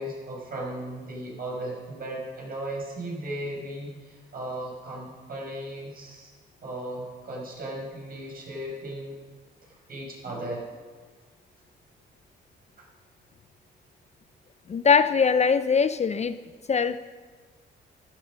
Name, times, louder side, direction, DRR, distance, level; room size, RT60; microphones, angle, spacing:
voice 1, 0.0-6.3 6.6-9.1 9.9-10.6 12.8-12.9, right 1 dB, 50° right, -1 dB, 6.1 m, -36 dB
voice 2, 14.7-16.3 16.7-17.0, left 6 dB, 35° left, 11 dB, 0.6 m, -21 dB
14.5 x 12.0 x 6.4 m, 1.5 s
cardioid pair, 90°, 20 cm